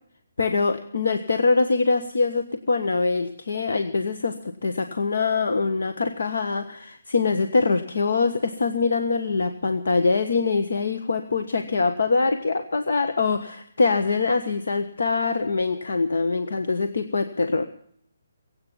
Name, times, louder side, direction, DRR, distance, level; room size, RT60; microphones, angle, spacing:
voice 1, 0.4-4.3 4.6-17.6, left 4 dB, 75° left, 8 dB, 1.4 m, -23 dB
22.5 x 8.7 x 7.3 m, 0.66 s
hypercardioid pair, 175°, 0 cm